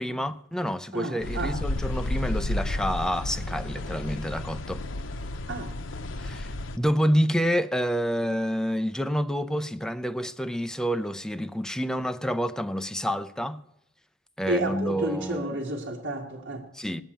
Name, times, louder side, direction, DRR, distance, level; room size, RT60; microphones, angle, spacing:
voice 1, 0.0-4.8 6.2-13.6 14.4-15.6 16.7-17.0, equal, 5° left, 0.5 m, -28 dB
voice 2, 0.9-1.6 5.5-5.7 14.5-16.7, right 2 dB, 60° right, 1.8 m, -31 dB
sound 1, 1.2-6.8, left 1 dB, 85° left, 0.8 m, -32 dB
19.5 x 7.2 x 8.9 m
head